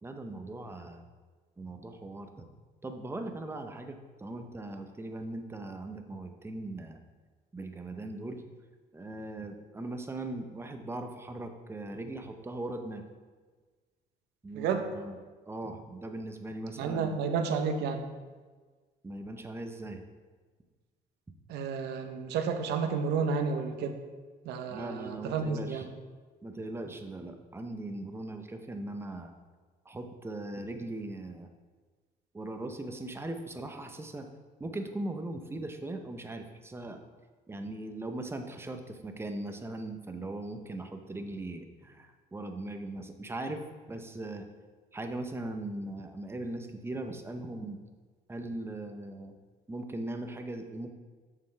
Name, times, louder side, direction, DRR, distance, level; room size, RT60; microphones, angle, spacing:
voice 1, 0.0-1.0 1.6-2.5 2.8-7.0 7.5-8.4 8.9-13.1 14.4-15.2 15.5-17.1 19.0-20.0 24.7-25.8 26.4-29.3 29.9-31.5 32.3-34.3 34.6-37.0 37.5-44.5 44.9-47.8 48.3-49.3 49.7-50.9, right 2 dB, 15° right, 6 dB, 0.7 m, -39 dB
voice 2, 14.5-14.9 16.8-18.1 21.5-24.0 24.4-25.9, right 5 dB, 80° right, 7 dB, 0.8 m, -31 dB
7.0 x 6.6 x 3.3 m, 1.4 s
cardioid pair, 110°, 17 cm